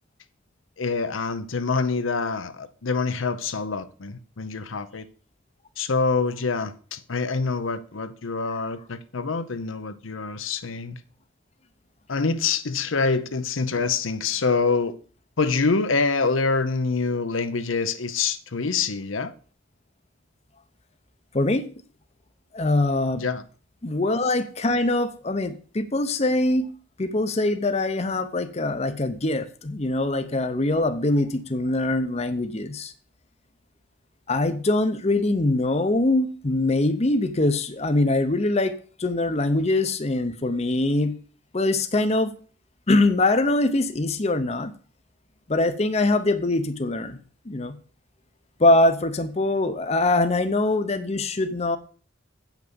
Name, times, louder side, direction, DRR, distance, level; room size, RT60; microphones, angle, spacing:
voice 1, 0.8-5.1 5.8-11.0 12.1-15.0 15.4-19.3 23.1-23.4, left 4 dB, 80° left, 0.8 m, -26 dB
voice 2, 21.3-21.7 22.5-23.2 23.8-26.7 27.0-32.9 34.3-41.2 41.5-42.3 42.9-44.7 45.5-47.2 47.5-47.8 48.6-51.8, left 2 dB, 35° left, 0.7 m, -23 dB
8.3 x 6.0 x 6.9 m
head